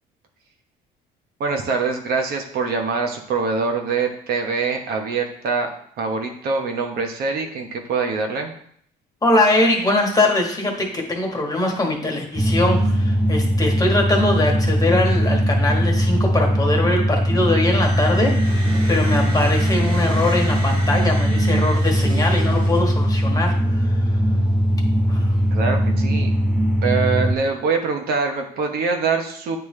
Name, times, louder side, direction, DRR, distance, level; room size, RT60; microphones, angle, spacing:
voice 1, 1.4-5.7 6.0-8.5 25.5-26.3 26.8-29.6, right 4 dB, 65° right, 3 dB, 1.0 m, -24 dB
voice 2, 9.2-24.0 25.1-25.3, left 2 dB, 20° left, 1 dB, 1.3 m, -22 dB
sound 1, 12.4-27.4, equal, 5° right, 0.5 m, -20 dB
sound 2, 17.6-23.3, right 2 dB, 30° right, 1.6 m, -34 dB
8.8 x 3.3 x 3.2 m, 0.63 s
cardioid pair, 110°, 17 cm